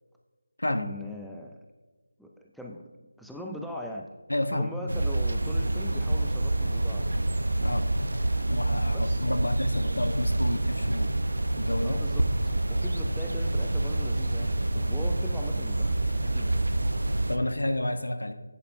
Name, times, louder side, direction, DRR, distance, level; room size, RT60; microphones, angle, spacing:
voice 1, 0.7-1.6 2.2-2.9 3.2-4.2 4.5-7.2 8.9-9.5 11.8-12.3 12.7-16.6, left 1 dB, ahead, -1 dB, 0.4 m, -41 dB
voice 2, 4.3-4.7 7.6-7.9 8.5-11.1 11.6-12.0 17.3-18.3, left 1 dB, 80° left, 7 dB, 1.1 m, -30 dB
sound 1, 4.9-17.4, right 2 dB, 75° right, 0.9 m, -27 dB
10.0 x 9.1 x 2.7 m, 1.3 s
figure-of-eight pair, 165°, 0 cm